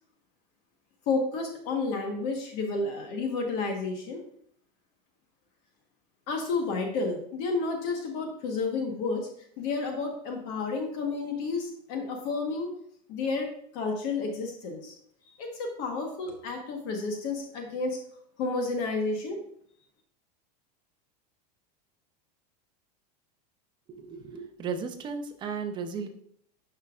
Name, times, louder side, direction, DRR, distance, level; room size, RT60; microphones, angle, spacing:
voice 1, 1.1-4.2 6.3-9.3 9.6-12.7 13.1-14.9 15.4-18.0 18.4-19.4, left 3 dB, 45° left, 3 dB, 1.3 m, -31 dB
voice 2, 23.9-26.1, right 5 dB, 20° right, 6 dB, 0.7 m, -35 dB
9.3 x 5.6 x 2.4 m, 0.65 s
supercardioid pair, 160°, 21 cm